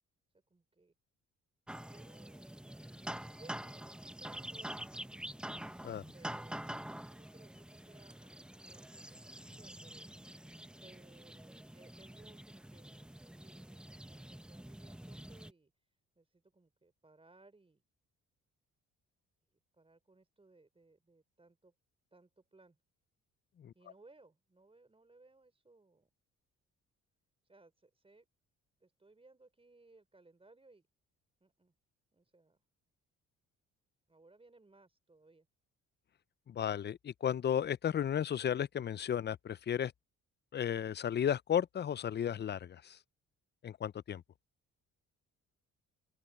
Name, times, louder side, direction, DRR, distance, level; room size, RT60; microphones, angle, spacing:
voice 1, 0.5-0.9 1.8-4.8 5.5-5.8 6.1-10.1 10.8-15.7 16.2-17.8 19.7-21.7 22.1-22.8 23.7-26.1 27.4-28.3 28.8-30.9 31.4-31.7 32.1-32.6 34.1-35.5, right 3 dB, 20° right, 4.5 m, -63 dB
sound 1, 1.7-15.5, right 1 dB, 5° right, 0.8 m, -47 dB
voice 2, 36.5-39.9 40.5-43.0 43.6-44.2, left 9 dB, 35° left, 0.5 m, -34 dB
cardioid pair, 90°, 30 cm